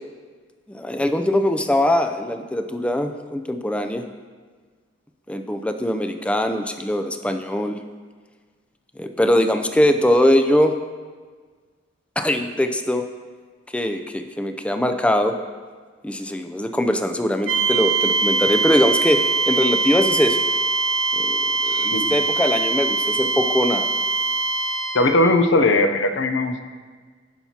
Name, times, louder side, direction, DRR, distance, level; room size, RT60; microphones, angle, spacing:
voice 1, 0.7-4.0 5.3-7.8 9.0-10.7 12.2-13.0 13.7-15.3 16.0-19.2 19.5-20.4 21.1-23.9, left 1 dB, 5° left, 6 dB, 0.4 m, -21 dB
sound 1, 17.5-25.2, right 3 dB, 80° right, 0.9 m, -22 dB
voice 2, 21.7-22.1 24.9-26.6, left 2 dB, 70° left, 7 dB, 0.7 m, -19 dB
15.5 x 5.9 x 2.9 m, 1.5 s
head